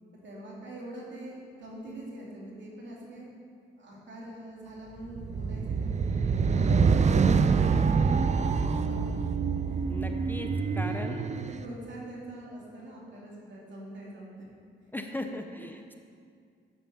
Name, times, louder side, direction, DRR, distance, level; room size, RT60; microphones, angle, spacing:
voice 1, 0.1-3.3 3.8-8.2 8.5-9.0 9.6-10.2 10.5-14.4 15.2-15.4, right 1 dB, 70° right, -4 dB, 2.5 m, -44 dB
sound 1, 5.1-11.6, right 5 dB, 35° right, 0.5 m, -26 dB
voice 2, 9.9-11.3 14.9-15.9, left 1 dB, 10° left, 5 dB, 0.6 m, -38 dB
8.3 x 7.1 x 5.5 m, 2.2 s
cardioid pair, 70°, 20 cm